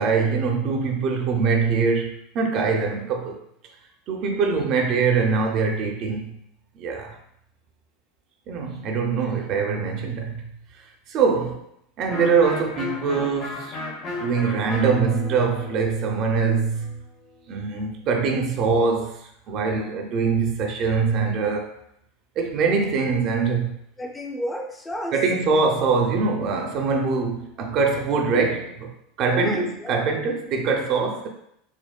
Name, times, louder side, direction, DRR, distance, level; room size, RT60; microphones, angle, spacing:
voice 1, 0.0-2.1 2.3-3.4 4.1-6.4 6.8-7.2 8.5-10.4 11.1-11.6 12.0-13.8 14.2-16.9 17.5-19.2 19.5-21.7 22.4-23.7 25.1-28.9 29.2-31.3, right 5 dB, 45° right, 2 dB, 0.5 m, -23 dB
Electric guitar, 12.1-17.7, left 3 dB, 50° left, 1.1 m, -35 dB
voice 2, 24.0-25.1 27.9-28.3 29.3-30.2, equal, 15° left, 2 dB, 0.5 m, -32 dB
4.3 x 2.1 x 2.2 m, 0.73 s
figure-of-eight pair, 80°, 0 cm